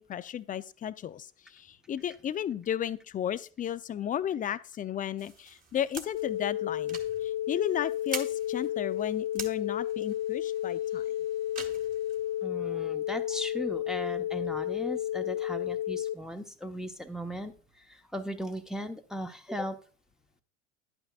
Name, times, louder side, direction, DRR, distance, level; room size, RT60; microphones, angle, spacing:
voice 1, 0.0-11.0, left 10 dB, 20° left, 0.5 m, -34 dB
sound 1, 5.2-12.5, right 4 dB, 20° right, 1.8 m, -45 dB
sound 2, 6.1-16.1, left 12 dB, 50° left, 0.8 m, -32 dB
voice 2, 12.4-17.5 17.8-19.8, equal, ahead, 1.0 m, -37 dB
11.5 x 8.9 x 2.4 m
hypercardioid pair, 80°, 39 cm